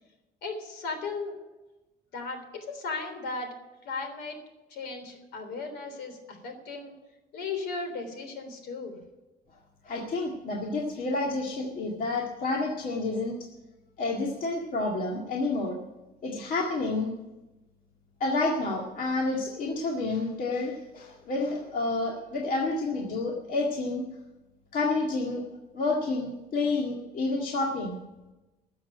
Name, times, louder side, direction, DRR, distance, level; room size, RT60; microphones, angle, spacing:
voice 1, 0.4-1.3 2.1-2.4 2.7-3.5 3.9-4.4 4.7-6.9 7.3-9.0, left 4 dB, 75° left, 6 dB, 3.5 m, -36 dB
voice 2, 9.8-13.5 14.0-15.8 16.2-17.1 18.2-24.0 24.7-25.5 25.7-28.0, left 3 dB, 55° left, 0 dB, 2.0 m, -29 dB
13.0 x 7.4 x 9.7 m, 1.0 s
cardioid pair, 110°, 17 cm